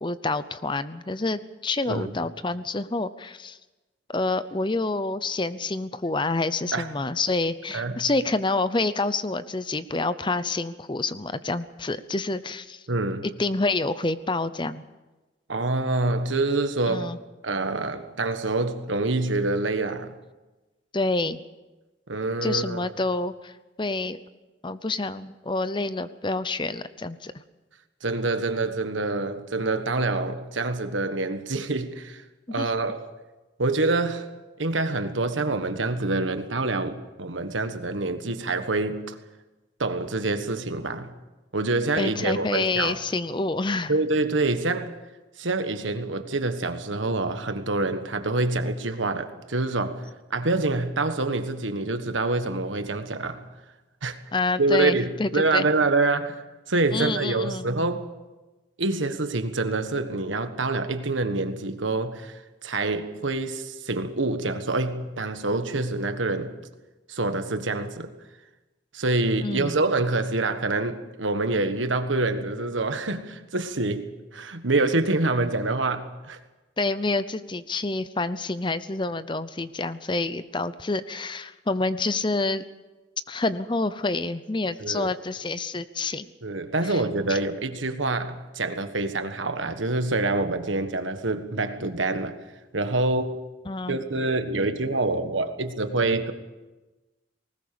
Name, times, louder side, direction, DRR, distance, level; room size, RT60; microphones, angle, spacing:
voice 1, 0.0-3.6 4.1-12.8 13.4-14.8 16.9-17.2 20.9-21.4 22.4-23.5 23.8-24.2 24.6-27.3 32.6-32.7 42.0-44.0 54.3-55.6 56.9-57.7 69.4-69.8 76.8-82.6 83.3-86.3 86.8-87.0 87.3-87.4 93.7-94.0, left 3 dB, 25° left, 0.7 m, -28 dB
voice 2, 12.9-13.3 15.5-17.1 17.4-20.1 22.1-22.9 28.0-32.2 32.5-33.1 33.6-34.3 34.6-39.2 39.8-41.1 41.5-43.0 43.9-45.0 45.4-53.4 54.0-54.2 54.6-56.4 56.7-58.1 58.8-66.6 67.1-68.1 68.9-74.1 74.3-76.4 84.8-85.1 86.4-92.4 92.7-93.3 93.9-96.3, right 2 dB, 90° right, 1.5 m, -26 dB
19.5 x 19.5 x 6.9 m
head